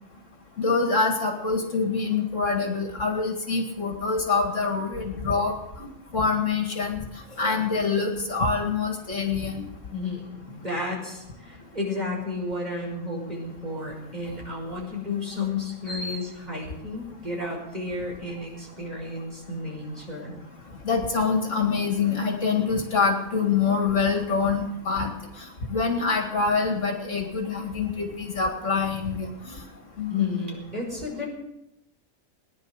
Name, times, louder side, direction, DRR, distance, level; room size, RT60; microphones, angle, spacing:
voice 1, 0.6-5.9 6.1-7.0 7.4-9.6 15.9-16.2 20.8-25.1 25.7-29.6 30.0-30.2, left 4 dB, 60° left, 3 dB, 2.4 m, -25 dB
voice 2, 9.9-20.4 30.1-31.3, left 3 dB, 30° right, -3 dB, 5.8 m, -32 dB
19.5 x 10.5 x 6.6 m, 0.86 s
omnidirectional pair, 1.5 m